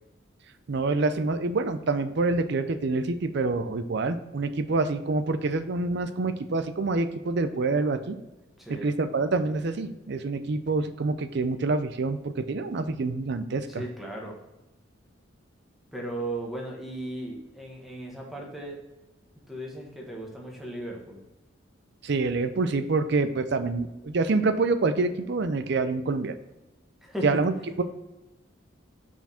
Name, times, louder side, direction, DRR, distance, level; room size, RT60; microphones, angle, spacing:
voice 1, 0.7-8.2 8.7-13.8 22.0-26.3 27.2-27.8, right 3 dB, 55° right, 10 dB, 0.5 m, -26 dB
voice 2, 8.6-8.9 13.7-14.4 15.9-18.8 19.5-21.2 27.0-27.2 27.6-27.7, right 1 dB, ahead, -2 dB, 1.3 m, -36 dB
5.8 x 4.6 x 4.2 m, 1.0 s
head